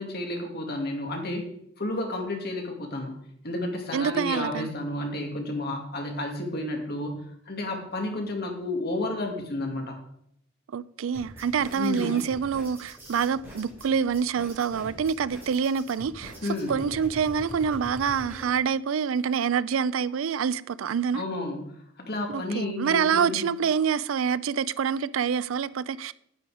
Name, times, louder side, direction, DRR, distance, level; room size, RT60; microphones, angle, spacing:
voice 1, 0.0-1.4 1.8-10.0 11.7-12.1 16.4-16.8 21.1-23.5, left 2 dB, 50° left, 2.4 m, -31 dB
voice 2, 3.9-4.7 10.7-16.3 16.7-21.2 22.3-26.1, right 7 dB, 85° right, 0.4 m, -26 dB
sound 1, 11.1-18.4, equal, 10° right, 5.2 m, -43 dB
9.5 x 9.3 x 5.0 m
head